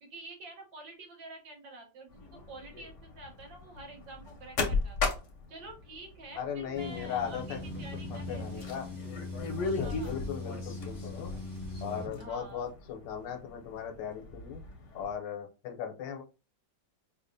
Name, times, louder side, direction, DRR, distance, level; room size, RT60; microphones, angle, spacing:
voice 1, 0.0-5.2 5.5-8.7 9.8-10.2 12.2-12.7, right 2 dB, 75° right, 2 dB, 1.8 m, -48 dB
sound 1, 2.1-15.1, left 4 dB, 55° left, 0.9 m, -38 dB
voice 2, 6.3-7.6 8.1-8.9 9.7-11.3 11.8-14.6 14.9-16.2, left 8 dB, 75° left, 4 dB, 1.4 m, -38 dB
sound 2, 6.7-12.1, left 2 dB, 25° right, 1.1 m, -40 dB
4.8 x 2.4 x 2.6 m, 0.31 s
omnidirectional pair, 2.0 m